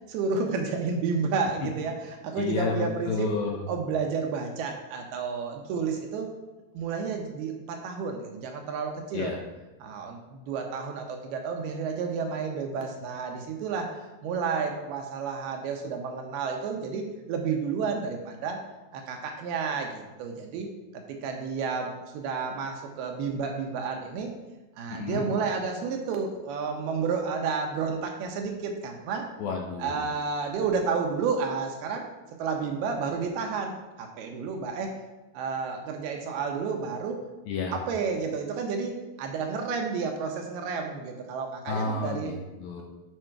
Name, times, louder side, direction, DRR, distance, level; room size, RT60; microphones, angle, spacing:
voice 1, 0.1-3.3 3.7-6.3 6.7-9.4 9.8-18.6 18.9-20.7 20.9-24.3 24.8-29.3 29.8-32.1 32.4-35.0 35.3-37.2 37.7-42.3, right 5 dB, 75° right, 3 dB, 2.5 m, -31 dB
voice 2, 2.4-3.6 9.1-9.4 24.9-25.3 29.4-30.1 37.5-37.8 41.7-42.8, left 4 dB, 75° left, 0 dB, 2.2 m, -31 dB
7.7 x 4.9 x 4.5 m, 1.2 s
omnidirectional pair, 4.9 m